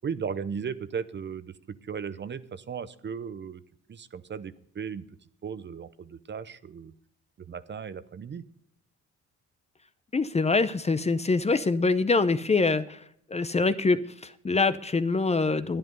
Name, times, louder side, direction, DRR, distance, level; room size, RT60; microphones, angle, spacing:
voice 1, 0.0-3.6 3.9-5.1 5.4-6.9 7.4-8.4, right 6 dB, 35° right, 14 dB, 0.7 m, -36 dB
voice 2, 10.1-13.0 13.3-15.8, left 3 dB, 20° left, 12 dB, 0.7 m, -25 dB
11.0 x 10.0 x 5.3 m, 0.69 s
cardioid pair, 90°, 30 cm